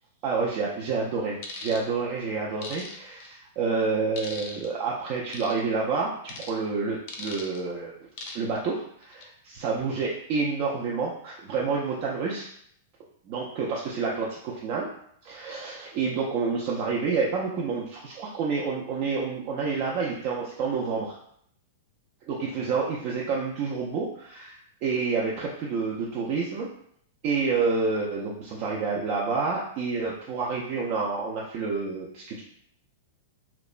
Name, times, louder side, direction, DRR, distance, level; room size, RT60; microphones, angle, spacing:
voice 1, 0.2-7.9 8.3-12.5 13.3-14.9 15.2-21.2 22.3-26.7 27.2-32.4, right 4 dB, 45° right, -4 dB, 0.4 m, -29 dB
sound 1, 1.4-1.8 2.6-3.3 4.2-4.7 5.3-5.6 6.3-6.5 7.1-7.6 8.2-8.6 9.0-9.2, left 4 dB, 50° left, 0.5 m, -39 dB
2.8 x 2.1 x 2.4 m, 0.67 s
hypercardioid pair, 140°, 0 cm